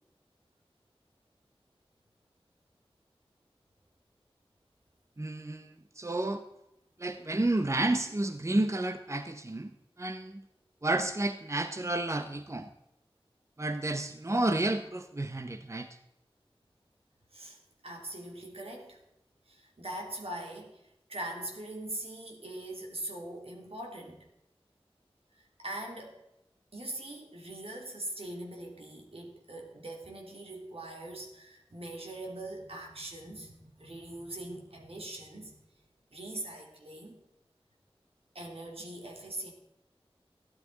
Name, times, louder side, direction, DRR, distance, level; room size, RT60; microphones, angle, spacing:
voice 1, 5.2-6.4 7.0-9.7 10.0-10.4 10.8-12.7 13.6-15.9, right 2 dB, 30° right, 8 dB, 0.8 m, -31 dB
voice 2, 17.8-19.0 19.5-24.2 25.3-26.2 26.7-35.5 36.1-37.2 38.3-39.5, right 1 dB, 80° right, 1 dB, 3.0 m, -42 dB
14.5 x 12.5 x 4.0 m, 0.86 s
wide cardioid pair, 50°, 10 cm